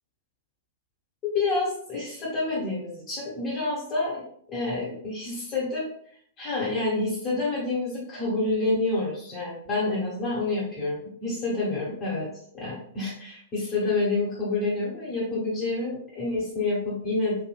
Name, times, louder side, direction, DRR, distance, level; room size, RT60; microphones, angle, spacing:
voice 1, 1.2-4.2 4.5-5.9 6.4-12.3 12.5-17.4, left 3 dB, 25° left, -8 dB, 1.1 m, -28 dB
3.4 x 2.5 x 2.3 m, 0.64 s
figure-of-eight pair, 105°, 0 cm